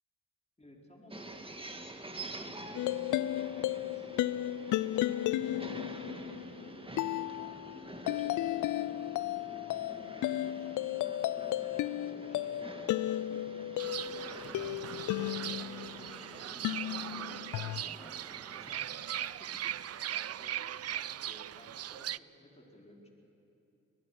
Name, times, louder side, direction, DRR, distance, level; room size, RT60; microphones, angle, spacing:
voice 1, 0.6-2.0 2.3-4.3 4.8-6.1 6.6-10.8 11.3-18.2 18.6-19.7 20.1-23.1, left 1 dB, 20° left, -1 dB, 4.9 m, -56 dB
sound 1, 1.1-18.7, right 2 dB, 20° right, 2.1 m, -48 dB
sound 2, 2.7-16.1 16.6-17.8, left 14 dB, 80° left, 0.4 m, -34 dB
Fowl / Bird, 13.8-22.2, right 11 dB, 55° right, 0.5 m, -39 dB
24.0 x 18.5 x 6.0 m, 2.8 s
supercardioid pair, 45°, 30 cm